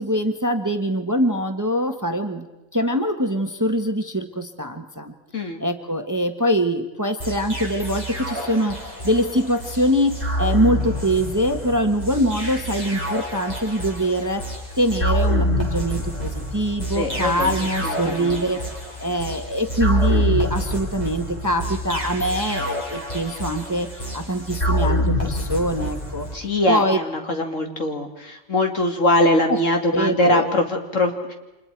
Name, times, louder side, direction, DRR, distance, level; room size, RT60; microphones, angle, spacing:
voice 1, 0.0-2.5 2.7-5.1 5.6-8.8 9.0-14.4 14.8-18.6 19.0-27.0 29.5-29.6 29.9-30.5, equal, 15° right, 6 dB, 1.1 m, -23 dB
sound 1, 7.2-26.4, equal, 30° left, 4.0 m, -27 dB
voice 2, 16.9-18.4 26.3-31.3, left 1 dB, 65° left, 3 dB, 2.8 m, -22 dB
29.5 x 26.5 x 4.6 m, 1.0 s
omnidirectional pair, 1.4 m